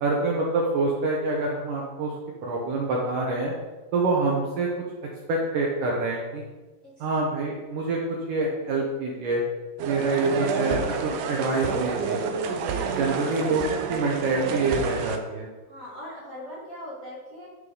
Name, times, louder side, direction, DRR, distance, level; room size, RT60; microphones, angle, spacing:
voice 1, 0.0-2.1 2.4-3.5 3.9-4.7 5.3-6.4 7.0-9.4 9.8-10.8 11.0-12.2 12.9-13.6 13.9-15.5, right 3 dB, 70° right, -2 dB, 2.2 m, -26 dB
sound 1, 9.8-15.2, right 5 dB, 90° right, 1.8 m, -29 dB
voice 2, 15.7-17.5, equal, 25° left, -8 dB, 2.0 m, -40 dB
11.0 x 6.5 x 4.0 m, 1.2 s
omnidirectional pair, 4.7 m